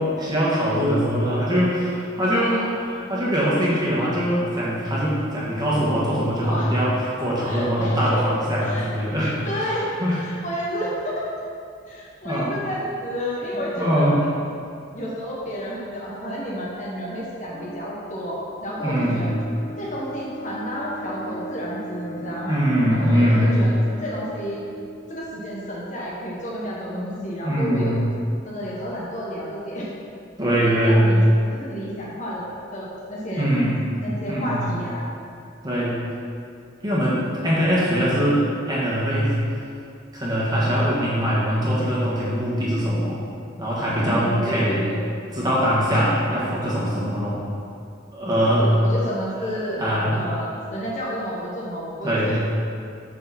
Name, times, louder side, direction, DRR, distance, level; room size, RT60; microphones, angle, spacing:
voice 1, 0.2-6.9 7.2-9.4 9.6-9.7 10.0-10.2 12.2-12.5 13.7-14.1 17.5-17.7 18.8-19.2 22.2-23.6 26.9-28.0 30.4-31.1 33.4-33.8 34.3-34.6 35.6-36.0 36.8-39.4 40.1-43.2 43.6-44.8 45.3-47.4 48.1-48.7 49.8-50.2 52.0-52.4, equal, 20° right, -7 dB, 1.6 m, -22 dB
voice 2, 2.3-2.7 6.4-6.8 7.5-8.2 8.6-8.9 9.2-11.4 11.9-14.1 14.9-19.3 19.8-22.6 22.9-24.6 25.1-28.0 28.4-29.9 30.6-31.2 31.5-32.4 32.7-33.5 34.0-35.1 44.0-45.0 48.5-49.8 50.1-52.4, equal, 40° left, -4 dB, 1.1 m, -31 dB
Bowed string instrument, 18.7-25.4, right 1 dB, 55° left, 1.9 m, -38 dB
6.7 x 6.2 x 4.2 m, 2.4 s
head